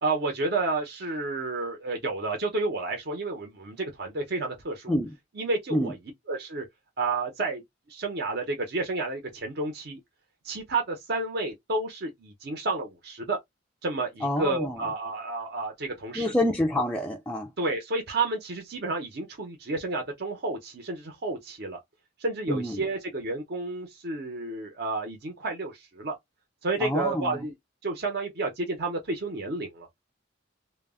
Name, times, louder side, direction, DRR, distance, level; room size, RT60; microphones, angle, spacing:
voice 1, 0.0-5.0 5.3-6.0 6.3-6.7 7.0-7.6 7.9-10.0 10.4-13.4 13.8-16.3 17.6-21.8 22.2-26.2 26.6-27.5 27.8-29.9, right 3 dB, 55° right, 0.6 m, -31 dB
voice 2, 14.2-14.8 16.2-17.5 22.5-22.8 26.8-27.4, left 1 dB, 5° left, 0.3 m, -27 dB
2.2 x 2.0 x 3.4 m
head